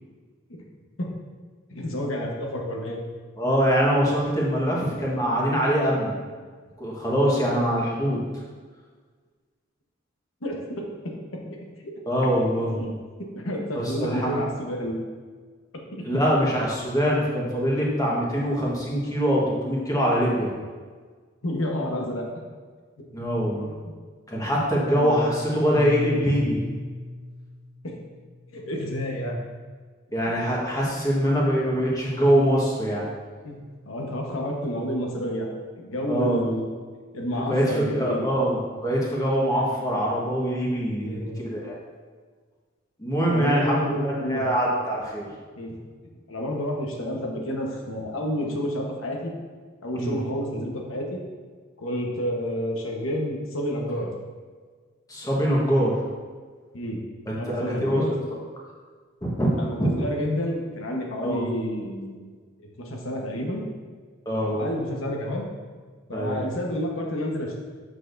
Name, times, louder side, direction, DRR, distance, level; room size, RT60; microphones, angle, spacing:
voice 1, 1.7-3.0 4.5-4.6 10.4-10.9 11.5-11.6 12.8-12.9 13.3-15.0 15.9-16.1 21.4-22.2 23.8-23.9 24.9-25.3 27.8-28.0 28.5-29.4 30.2-30.4 33.4-33.6 33.8-35.5 35.8-36.6 37.1-38.3 41.0-41.5 43.2-44.5 45.6-45.8 46.3-49.3 49.8-51.2 51.8-54.1 56.7-57.0 57.4-58.1 59.6-62.3 62.8-63.6 64.4-65.5 66.1-67.6, equal, 80° left, 0 dB, 1.2 m, -29 dB
voice 2, 3.4-6.2 6.8-8.2 12.1-12.8 13.7-14.4 16.0-20.5 23.1-23.7 24.3-26.6 30.1-33.0 36.1-36.5 37.3-41.7 43.0-45.3 49.9-50.2 55.1-56.0 57.3-58.1 59.2-59.5 59.8-59.9 61.2-61.5 64.2-64.5 66.1-66.4, equal, 15° left, -4 dB, 1.4 m, -23 dB
Piano, 25.7-30.2, left 2 dB, 55° left, 0.9 m, -36 dB
7.4 x 6.3 x 2.6 m, 1.5 s
head